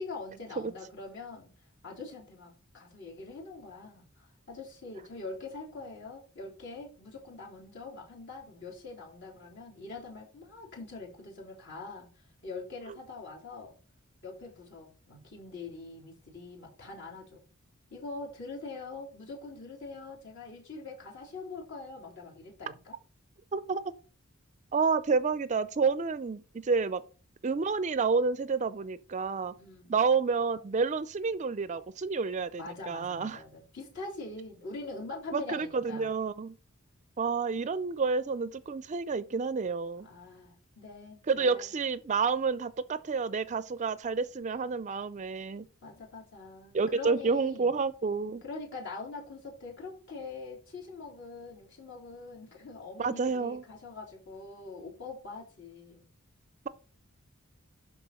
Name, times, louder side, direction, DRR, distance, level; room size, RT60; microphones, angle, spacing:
voice 1, 0.0-1.5 1.8-12.1 12.4-13.8 14.2-17.4 17.9-23.0 29.5-30.0 32.6-36.1 40.0-41.8 45.8-47.7 48.4-56.1, left 3 dB, 60° left, 3.8 m, -43 dB
voice 2, 23.5-23.8 24.7-27.0 27.4-29.5 29.9-33.4 35.3-36.6 37.2-40.1 41.3-45.7 46.7-48.4 53.0-53.6, right 4 dB, 35° right, 0.4 m, -29 dB
12.0 x 4.3 x 4.3 m
head